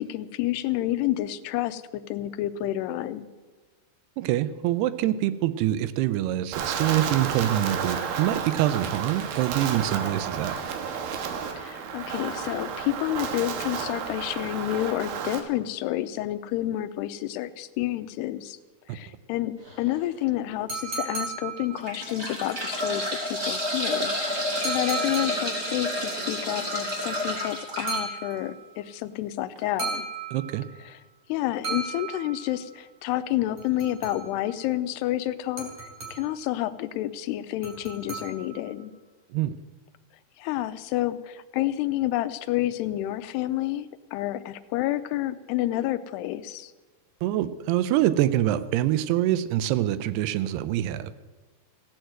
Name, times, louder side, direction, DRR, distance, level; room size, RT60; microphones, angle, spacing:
voice 1, 0.0-1.8 2.1-3.3 11.6-18.6 18.9-30.0 30.9-31.0 31.3-38.9 40.4-46.7, left 14 dB, 90° left, 13 dB, 2.7 m, -29 dB
voice 2, 4.2-10.5 30.3-30.6 39.3-39.5 47.2-51.1, right 13 dB, 85° right, 13 dB, 2.7 m, -25 dB
Wind, 6.5-15.4, right 6 dB, 70° right, 2.8 m, -32 dB
sound 1, 19.6-19.9 20.5-20.6 21.6-28.0 29.6-29.7 29.9-30.0, equal, 15° right, 3.1 m, -30 dB
sound 2, 20.7-22.2 24.6-25.8 27.9-28.8 29.8-30.8 31.6-32.7 33.6-34.5 35.6-36.5 37.6-38.7, right 4 dB, 45° right, 3.8 m, -35 dB
15.5 x 9.5 x 7.8 m, 1.3 s
omnidirectional pair, 4.6 m